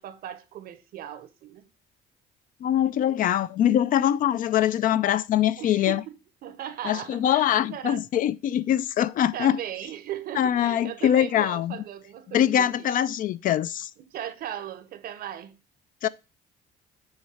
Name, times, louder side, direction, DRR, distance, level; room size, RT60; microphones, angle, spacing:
voice 1, 0.0-1.7 5.6-8.0 9.3-12.9 14.1-15.6, right 11 dB, 60° right, 0.8 m, -38 dB
voice 2, 2.6-6.0 6.8-9.6 10.4-11.8 12.3-13.9 16.0-16.1, left 11 dB, 55° left, 0.4 m, -23 dB
7.2 x 3.1 x 4.7 m
cardioid pair, 110°, 17 cm